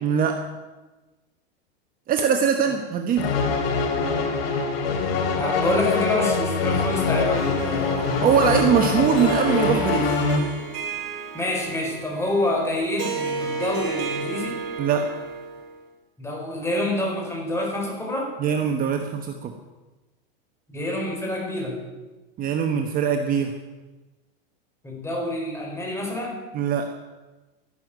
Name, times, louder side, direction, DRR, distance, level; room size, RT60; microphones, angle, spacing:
voice 1, 0.0-0.4 2.1-3.3 8.2-10.1 14.8-15.1 18.4-19.6 22.4-23.5 26.5-26.9, right 7 dB, 30° right, 5 dB, 1.3 m, -22 dB
sound 1, 3.2-10.4, left 4 dB, 75° left, 3.9 m, -24 dB
voice 2, 5.3-8.7 11.3-14.6 16.2-18.3 20.7-21.8 24.8-26.4, left 1 dB, 10° left, 0 dB, 4.7 m, -27 dB
Harp, 7.3-15.8, right 5 dB, 60° right, 6.0 m, -33 dB
13.0 x 11.5 x 9.2 m, 1.2 s
supercardioid pair, 140°, 30 cm